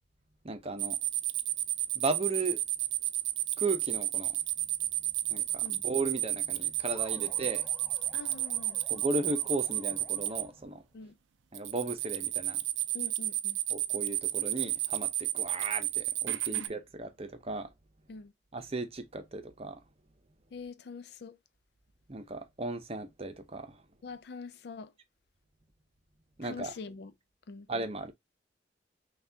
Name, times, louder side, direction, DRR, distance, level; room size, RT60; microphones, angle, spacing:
voice 1, 0.4-1.0 1.9-2.6 3.6-4.4 5.3-7.6 8.9-10.8 11.5-12.6 13.7-17.7 18.5-19.8 22.1-23.8 26.4-26.7 27.7-28.1, right 2 dB, 35° right, 0.7 m, -35 dB
sound 1, 0.8-10.4 11.5-16.7, right 14 dB, 90° right, 0.4 m, -32 dB
sound 2, 4.4-10.6, left 1 dB, 35° left, 1.4 m, -63 dB
sound 3, 6.9-10.8, equal, ahead, 0.5 m, -55 dB
voice 2, 8.1-8.8 10.9-11.2 12.9-13.6 16.5-16.7 18.1-18.3 20.5-21.4 24.0-24.9 26.4-27.1 27.5-27.7, left 4 dB, 60° left, 0.4 m, -44 dB
5.7 x 2.4 x 2.7 m
head